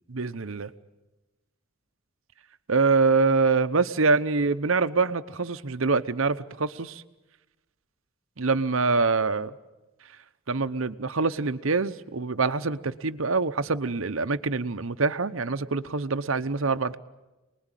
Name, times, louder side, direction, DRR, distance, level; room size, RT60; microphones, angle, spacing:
voice 1, 0.1-0.7 2.7-7.0 8.4-9.5 10.5-17.0, right 4 dB, 65° right, 0.9 m, -25 dB
28.5 x 20.5 x 9.1 m
head